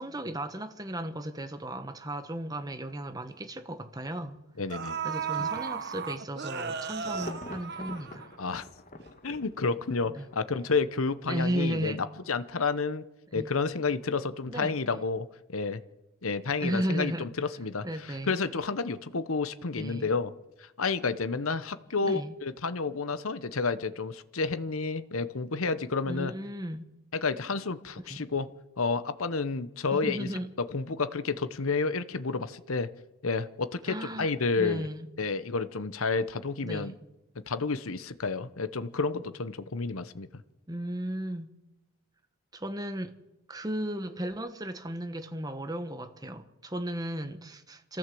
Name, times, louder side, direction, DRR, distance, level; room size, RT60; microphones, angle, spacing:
voice 1, 0.0-4.4 5.0-8.3 10.1-10.3 11.3-12.0 13.3-13.5 14.5-14.8 16.6-17.3 17.8-18.4 19.8-20.1 22.0-22.4 26.0-26.9 28.1-28.3 29.9-30.5 33.9-35.1 36.6-37.0 40.7-41.5 42.5-43.2 43.5-48.0, right 1 dB, 15° right, 1.2 m, -35 dB
sound 1, 2.5-2.6 3.0-3.2 4.2-4.3 4.7-8.6 9.0-9.1, right 6 dB, 50° right, 1.0 m, -35 dB
voice 2, 4.6-5.0 5.4-5.5 8.4-8.7 9.2-13.1 13.3-15.3 15.5-15.8 16.2-20.3 20.6-26.3 27.1-28.5 28.8-30.3 30.6-32.9 33.2-34.9 35.2-36.9 37.4-40.3, left 4 dB, 75° left, 1.0 m, -30 dB
Insect / Thunder / Rain, 6.4-10.8 11.2-11.3, left 2 dB, 35° left, 1.7 m, -45 dB
26.0 x 15.0 x 7.8 m
head